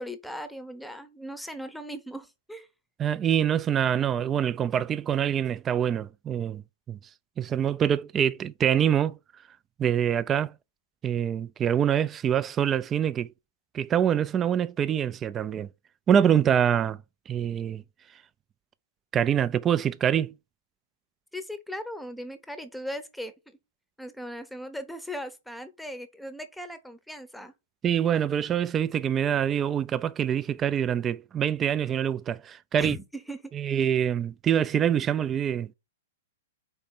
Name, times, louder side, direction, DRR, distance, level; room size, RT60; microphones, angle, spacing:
voice 1, 0.0-2.7 21.3-23.6 24.0-27.5 32.8-33.5, equal, ahead, 0.9 m, -38 dB
voice 2, 3.0-6.6 6.9-7.0 7.4-9.2 9.8-10.5 11.0-13.3 13.7-15.7 16.1-17.0 17.3-17.8 19.1-20.3 27.8-33.0 33.5-35.7, right 9 dB, 20° right, 0.4 m, -25 dB
4.4 x 4.3 x 5.4 m
figure-of-eight pair, 110°, 0 cm